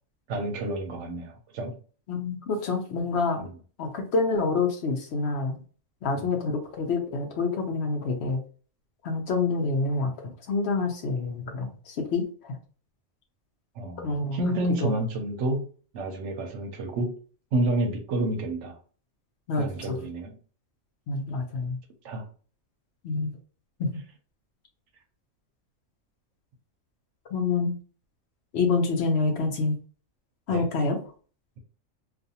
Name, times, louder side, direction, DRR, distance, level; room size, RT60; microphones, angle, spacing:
voice 1, 0.3-1.8 3.4-3.5 6.2-6.3 13.8-15.7 15.9-17.2 17.5-18.8 19.6-20.3 22.0-22.3 30.5-30.6, right 1 dB, 70° right, 5 dB, 0.8 m, -29 dB
voice 2, 2.1-3.4 3.8-5.6 6.0-8.4 9.0-12.6 14.0-14.4 14.8-14.9 19.5-19.7 21.1-21.8 23.0-23.3 23.8-23.9 27.3-27.7 28.5-29.8 30.5-31.0, left 3 dB, 65° left, 3 dB, 0.8 m, -27 dB
2.4 x 2.4 x 2.7 m, 0.40 s
omnidirectional pair, 1.4 m